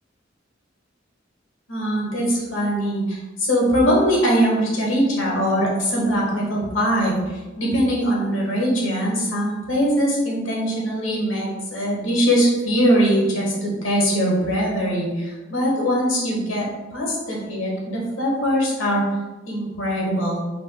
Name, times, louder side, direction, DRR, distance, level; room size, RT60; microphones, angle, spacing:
voice 1, 1.7-19.0 19.5-20.4, equal, 85° left, -3 dB, 1.5 m, -22 dB
5.5 x 4.1 x 2.2 m, 1.2 s
head